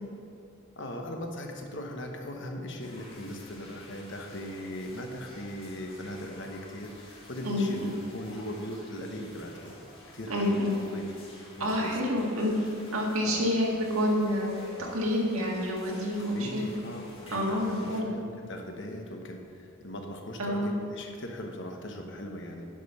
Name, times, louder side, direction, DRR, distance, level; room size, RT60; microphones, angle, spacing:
voice 1, 0.8-9.7 10.1-10.6 10.8-11.0 11.6-11.9 13.2-13.4 14.8-14.9 16.3-22.7, left 1 dB, 55° left, 3 dB, 1.1 m, -39 dB
sound 1, 2.8-18.0, left 1 dB, 25° left, 1.8 m, -51 dB
voice 2, 7.4-7.9 10.3-10.7 11.6-12.6 12.9-14.6 14.9-16.6 17.3-18.1 20.4-20.7, left 1 dB, 75° right, -2 dB, 1.8 m, -28 dB
10.5 x 5.4 x 5.8 m, 2.6 s
head